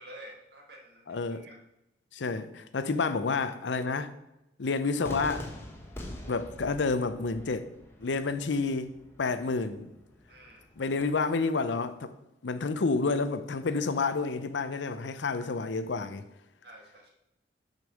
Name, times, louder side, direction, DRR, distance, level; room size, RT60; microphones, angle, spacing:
voice 1, 0.0-1.6 10.3-10.7 16.6-17.1, right 1 dB, 60° right, 1.8 m, -50 dB
voice 2, 1.1-1.5 2.1-4.1 4.6-5.5 6.3-7.7 8.0-9.9 10.8-12.1 12.4-16.3, left 4 dB, 80° left, 0.6 m, -29 dB
Cheering / Fireworks, 5.0-11.0, left 1 dB, 15° left, 1.0 m, -45 dB
6.5 x 5.2 x 6.2 m
head